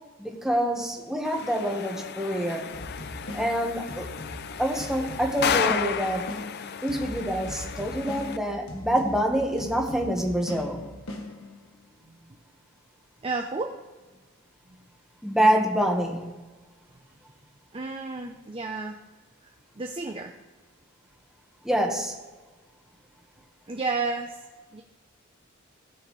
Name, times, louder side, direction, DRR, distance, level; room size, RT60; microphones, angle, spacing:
voice 1, 0.2-2.7 3.3-4.0 4.6-6.3 6.8-10.9 15.2-16.3 21.6-22.1, equal, ahead, 0 dB, 1.4 m, -26 dB
sound 1, 1.2-8.4, left 7 dB, 50° left, 0.5 m, -33 dB
sound 2, 2.7-11.8, left 1 dB, 75° left, 1.5 m, -40 dB
voice 2, 13.2-13.7 17.7-19.0 19.4-20.3 23.7-24.4 24.7-24.8, right 3 dB, 25° right, 3 dB, 0.6 m, -32 dB
17.5 x 6.3 x 3.2 m, 1.3 s
head